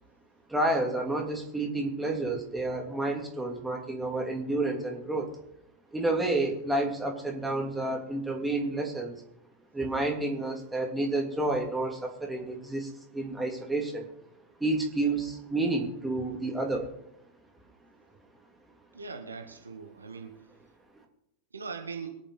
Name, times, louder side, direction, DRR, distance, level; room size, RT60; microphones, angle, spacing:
voice 1, 0.5-5.3 5.9-9.2 9.7-14.1 14.6-16.9, right 2 dB, 5° right, 0 dB, 3.0 m, -30 dB
voice 2, 18.9-20.4 21.5-22.2, right 5 dB, 75° right, 5 dB, 1.7 m, -40 dB
23.5 x 8.9 x 4.0 m, 0.82 s
figure-of-eight pair, 90°, 0 cm